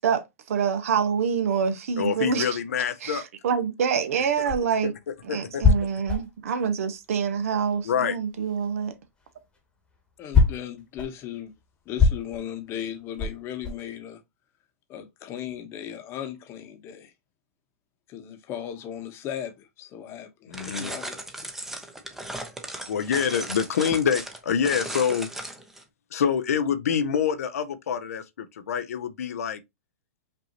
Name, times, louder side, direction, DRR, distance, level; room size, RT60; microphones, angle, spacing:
voice 1, 0.0-2.6 3.0-4.9 5.3-8.9, right 7 dB, 70° right, 0.9 m, -26 dB
voice 2, 2.0-3.2 4.8-5.6 7.8-8.2 20.5-20.9 22.9-25.3 26.1-29.6, left 7 dB, 80° left, 0.6 m, -26 dB
sound 1, 4.1-7.9 8.2-13.9, left 4 dB, 10° left, 1.2 m, -25 dB
voice 3, 10.2-11.5 11.9-14.2 14.9-17.1 18.1-21.5, left 10 dB, 30° left, 1.0 m, -37 dB
sound 2, 20.5-25.8, right 1 dB, 5° right, 0.7 m, -36 dB
5.3 x 2.7 x 2.8 m
hypercardioid pair, 135°, 8 cm